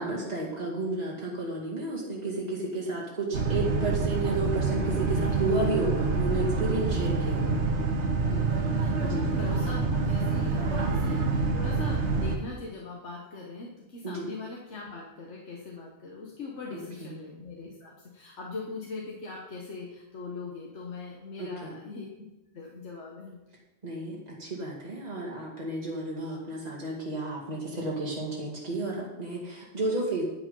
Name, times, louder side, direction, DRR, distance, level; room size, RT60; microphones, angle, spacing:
voice 1, 0.0-7.6 9.0-9.3 14.0-14.3 16.7-17.2 21.4-21.8 23.8-30.2, right 2 dB, 35° right, -4 dB, 2.4 m, -32 dB
Boat Water vehicle, 3.3-12.4, right 3 dB, 80° right, 1.5 m, -27 dB
voice 2, 8.2-22.3 22.5-23.4, left 4 dB, 90° left, -2 dB, 1.6 m, -41 dB
10.5 x 7.6 x 5.5 m, 0.99 s
omnidirectional pair, 1.1 m